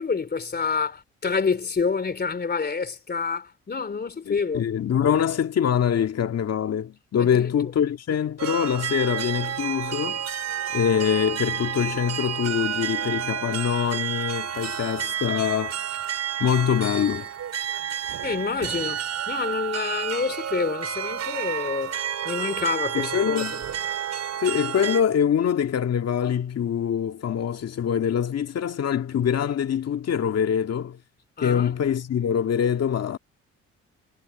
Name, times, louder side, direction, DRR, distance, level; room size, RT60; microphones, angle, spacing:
voice 1, 0.0-4.7 7.2-7.5 18.2-22.0 22.3-23.6 31.4-31.8, left 5 dB, 35° left, 3.5 m, -28 dB
voice 2, 4.3-10.2 10.7-15.8 16.4-17.3 22.9-23.6 24.4-31.0 31.4-33.2, left 8 dB, 55° left, 2.0 m, -24 dB
sound 1, 8.4-25.0, right 9 dB, 60° right, 5.3 m, -30 dB
cardioid pair, 90°, 30 cm